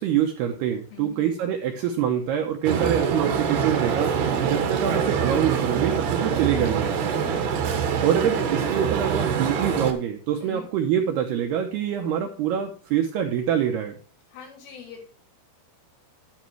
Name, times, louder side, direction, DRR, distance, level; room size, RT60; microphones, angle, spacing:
voice 1, 0.0-4.1 4.4-6.9 8.0-14.0, right 9 dB, 90° right, 3 dB, 2.3 m, -25 dB
voice 2, 0.9-1.3 7.2-7.5 10.4-10.7 14.3-15.1, left 7 dB, 60° left, 1 dB, 5.0 m, -42 dB
sound 1, 2.6-9.9, right 7 dB, 70° right, 1.9 m, -25 dB
10.5 x 10.0 x 3.2 m, 0.37 s
omnidirectional pair, 5.8 m